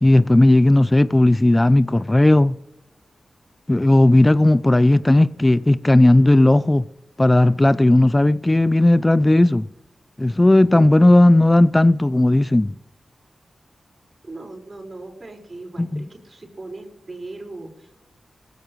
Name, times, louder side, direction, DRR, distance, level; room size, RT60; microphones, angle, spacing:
voice 1, 0.0-2.5 3.7-6.9 7.2-9.7 10.2-12.7 15.8-16.0, left 1 dB, 25° left, 0.5 m, -15 dB
voice 2, 14.2-18.0, right 2 dB, 50° right, 5.0 m, -38 dB
18.0 x 15.5 x 3.2 m
cardioid pair, 40°, 0 cm